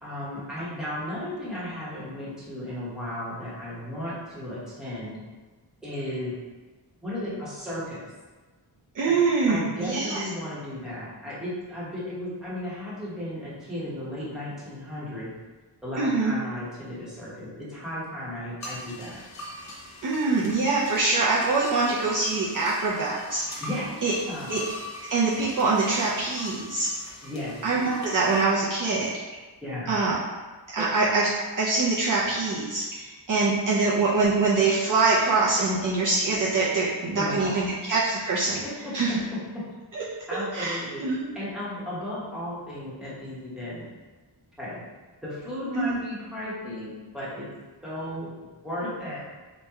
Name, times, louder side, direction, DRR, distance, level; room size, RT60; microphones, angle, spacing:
voice 1, 0.0-5.2 5.8-6.3 7.0-8.1 9.1-9.2 9.5-15.3 15.8-19.2 23.6-24.5 27.2-27.6 29.6-29.9 30.8-30.9 37.1-37.6 38.6-38.9 40.3-41.0 41.3-43.8 44.6-44.8 45.2-47.5 47.8-48.3 48.6-49.2, left 1 dB, ahead, -9 dB, 0.9 m, -35 dB
voice 2, 8.9-10.2 16.0-16.3 20.0-23.6 24.0-24.1 24.5-24.6 25.1-26.9 27.6-29.1 29.9-30.2 30.7-31.3 31.6-38.6 38.9-39.1 39.9-40.0 40.5-41.2 45.7-45.9, right 3 dB, 45° right, -7 dB, 0.5 m, -24 dB
sound 1, 18.6-28.4, left 1 dB, 40° left, 0.5 m, -41 dB
2.9 x 2.2 x 3.4 m, 1.3 s
wide cardioid pair, 160°, 45 cm